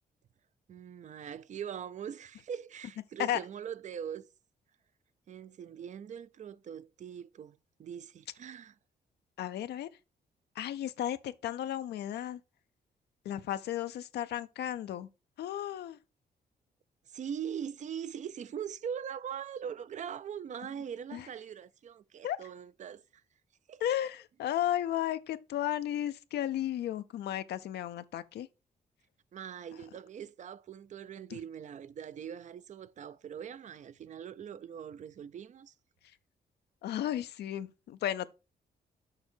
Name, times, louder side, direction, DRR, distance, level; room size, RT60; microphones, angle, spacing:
voice 1, 0.7-4.3 5.3-8.7 17.1-23.2 23.7-23.8 29.3-35.7, right 8 dB, 45° right, 0.5 m, -42 dB
voice 2, 9.4-9.9 10.6-12.4 13.2-15.1 15.4-16.0 21.1-21.3 22.2-22.4 23.8-28.5 36.8-38.3, left 11 dB, 85° left, 0.5 m, -34 dB
6.8 x 5.8 x 4.4 m
cardioid pair, 130°, 17 cm